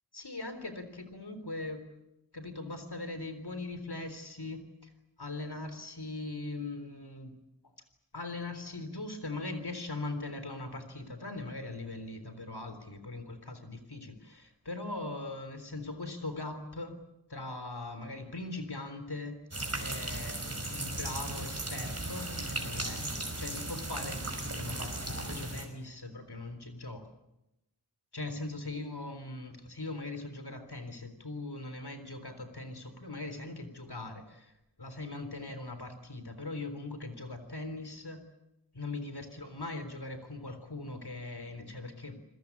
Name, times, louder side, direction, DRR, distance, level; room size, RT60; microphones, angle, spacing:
voice 1, 0.1-1.8 2.3-4.9 5.2-7.4 8.1-17.0 17.3-19.4 19.8-20.4 20.7-27.1 28.1-38.2 38.7-42.2, left 2 dB, 65° left, 9 dB, 3.7 m, -40 dB
sound 1, 19.5-25.7, right 2 dB, 35° right, 5.3 m, -36 dB
28.0 x 21.0 x 8.5 m, 0.90 s
wide cardioid pair, 50°, 41 cm